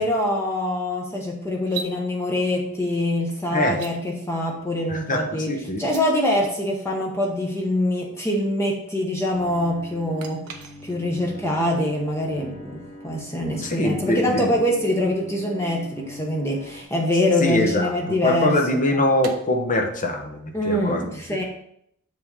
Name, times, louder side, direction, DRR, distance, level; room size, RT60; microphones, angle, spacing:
voice 1, 0.0-10.5 10.8-19.0 20.5-21.4, left 1 dB, 10° left, -1 dB, 1.0 m, -24 dB
sound 1, 1.6-1.9 3.7-3.9 5.7-6.0 10.2-11.2 14.4-14.5 16.4-18.6 19.2-19.4, right 7 dB, 75° right, 0.8 m, -40 dB
voice 2, 4.9-5.8 13.6-14.5 17.4-21.0, left 1 dB, 35° left, 3 dB, 1.1 m, -23 dB
Bowed string instrument, 9.3-16.8, left 1 dB, 75° left, 1.2 m, -42 dB
7.7 x 3.7 x 5.5 m, 0.73 s
head